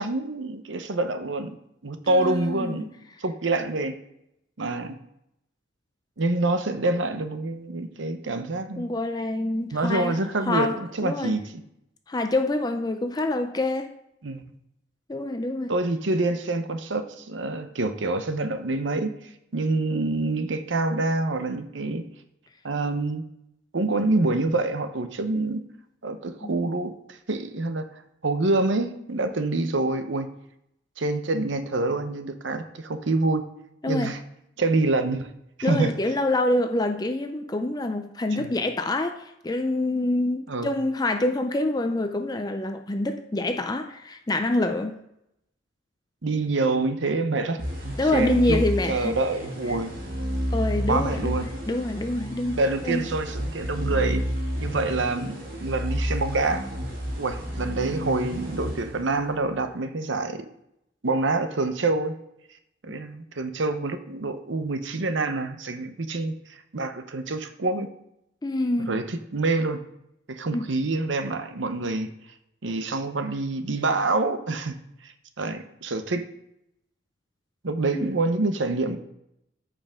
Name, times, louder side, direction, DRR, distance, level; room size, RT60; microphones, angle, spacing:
voice 1, 0.0-1.5 1.8-2.9 3.2-4.0 4.6-5.0 6.2-8.9 9.7-11.6 14.2-14.4 15.7-19.1 19.5-22.1 22.6-23.2 23.7-25.6 26.0-27.8 28.2-30.3 31.0-33.4 33.9-34.2 34.6-35.3 35.6-35.9 38.4-38.5 40.5-40.7 46.2-47.6 48.1-48.6 48.9-49.9 50.9-51.5 52.6-54.2 54.6-56.7 57.2-60.4 61.0-62.1 62.8-66.3 66.7-67.9 68.9-69.8 70.3-72.1 72.6-74.8 75.0-76.2 77.6-79.0, right 2 dB, 80° right, 8 dB, 0.8 m, -26 dB
voice 2, 2.1-2.9 8.8-11.4 12.1-13.9 15.1-15.7 26.4-26.6 33.8-34.1 35.6-45.0 48.0-49.1 49.7-49.8 50.5-53.1 62.9-63.0 68.4-69.1 70.5-70.7 77.9-78.1, left 2 dB, 20° left, 6 dB, 0.4 m, -26 dB
sound 1, 47.6-59.4, equal, 50° right, 2.4 m, -31 dB
14.0 x 5.0 x 3.6 m, 0.80 s
head